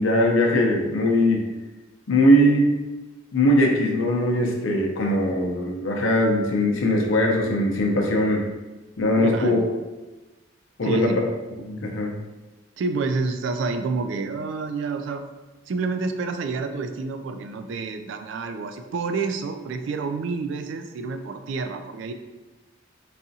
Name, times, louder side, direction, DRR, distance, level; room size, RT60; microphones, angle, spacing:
voice 1, 0.0-1.4 2.1-2.7 3.3-8.5 9.0-9.6 10.8-11.1 11.6-12.1, equal, 75° left, 1 dB, 0.6 m, -20 dB
voice 2, 9.2-9.7 10.8-11.2 12.8-15.2 15.7-22.1, right 4 dB, 65° right, 7 dB, 0.3 m, -29 dB
4.1 x 2.4 x 2.6 m, 1.1 s
head